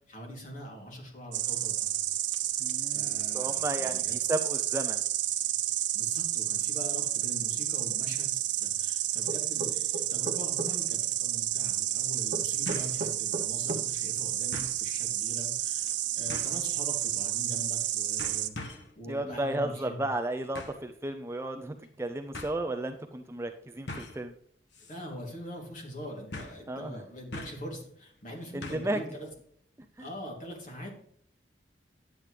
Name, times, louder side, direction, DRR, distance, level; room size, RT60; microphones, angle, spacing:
voice 1, 0.1-1.9 2.9-4.2 5.9-20.1 24.9-29.3 30.0-31.0, equal, 45° left, 0 dB, 2.7 m, -43 dB
Insect, 1.3-18.5, right 12 dB, 85° right, 0.7 m, -31 dB
voice 2, 2.6-5.0 19.1-24.3 26.7-27.0 28.5-29.0 30.0-30.1, right 1 dB, 15° right, 6 dB, 0.4 m, -34 dB
sound 1, 9.3-10.7 12.3-13.9, right 1 dB, 50° right, 0.8 m, -35 dB
sound 2, 10.7-10.8 12.7-13.0 13.4-13.5 14.5-14.8 16.3-16.6 17.6-17.8 18.2-18.9 20.5-20.9 21.8-21.9 22.3-22.6 23.9-24.2 24.7-25.0 25.2-25.3 26.3-26.7 27.3-27.7 28.6-29.0 29.3-29.4, left 2 dB, 80° left, 1.4 m, -42 dB
10.0 x 8.5 x 3.3 m, 0.64 s
head